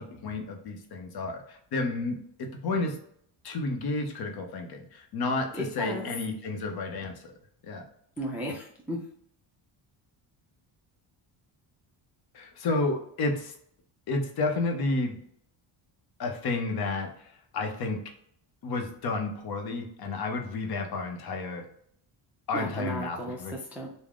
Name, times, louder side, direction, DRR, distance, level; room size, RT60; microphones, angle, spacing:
voice 1, 0.0-3.0 3.4-7.3 7.6-7.8 12.3-13.5 14.1-15.2 16.2-18.0 18.6-21.6 22.5-23.5, left 3 dB, 50° left, 4 dB, 0.7 m, -31 dB
voice 2, 5.5-6.1 8.2-9.0 22.5-23.9, equal, 5° right, -2 dB, 0.4 m, -34 dB
3.5 x 2.1 x 3.5 m, 0.65 s
cardioid pair, 155°, 48 cm